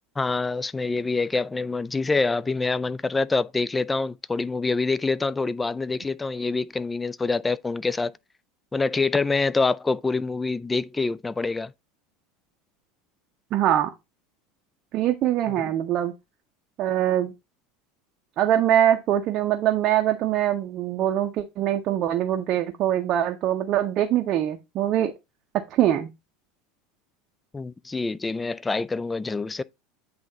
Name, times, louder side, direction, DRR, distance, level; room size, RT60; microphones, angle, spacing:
voice 1, 0.2-8.1 8.7-11.7 15.6-15.7 27.5-29.6, left 3 dB, 15° left, 0.3 m, -26 dB
voice 2, 13.5-13.9 14.9-16.1 16.8-17.3 18.4-25.1 25.7-26.1, right 11 dB, 40° right, 0.6 m, -23 dB
8.2 x 3.4 x 3.9 m
figure-of-eight pair, 75°, 0 cm